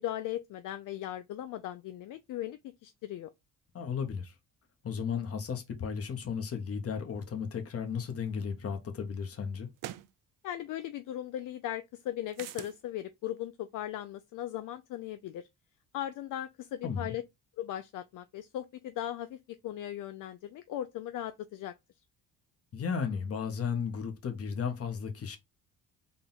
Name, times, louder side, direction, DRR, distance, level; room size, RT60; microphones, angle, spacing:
voice 1, 0.0-3.3 10.4-15.5 15.9-17.2 17.6-19.4 19.6-21.7, left 12 dB, 65° left, 0.5 m, -38 dB
voice 2, 3.7-4.3 4.8-9.7 16.8-17.1 22.7-25.4, left 6 dB, 40° left, 1.0 m, -34 dB
sound 1, 8.4-8.5 9.8-10.1 12.3-12.8, right 13 dB, 65° right, 0.5 m, -42 dB
3.8 x 2.3 x 3.9 m
cardioid pair, 115°, 35 cm